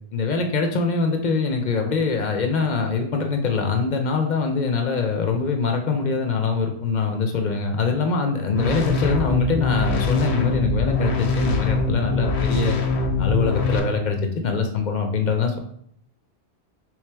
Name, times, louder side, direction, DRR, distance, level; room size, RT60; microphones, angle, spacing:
voice 1, 0.1-12.8 13.2-14.2 14.4-15.6, left 4 dB, 55° left, 4 dB, 0.5 m, -23 dB
sound 1, 8.5-13.8, left 2 dB, 85° left, 0.9 m, -23 dB
3.5 x 3.1 x 3.3 m, 0.67 s
omnidirectional pair, 1.1 m